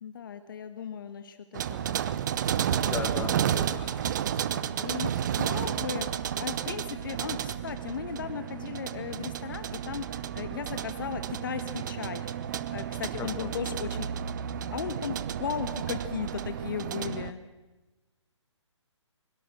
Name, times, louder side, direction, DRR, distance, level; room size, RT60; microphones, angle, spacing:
voice 1, 0.0-2.0 2.7-3.3 4.7-5.1 5.4-14.1 14.7-17.4, left 8 dB, 45° left, 10 dB, 1.4 m, -37 dB
sound 1, 1.5-17.3, right 9 dB, 40° right, 0.9 m, -32 dB
voice 2, 2.5-4.4 13.2-13.5, left 5 dB, 15° left, 6 dB, 2.1 m, -38 dB
23.5 x 22.5 x 6.1 m, 1.2 s
figure-of-eight pair, 135°, 16 cm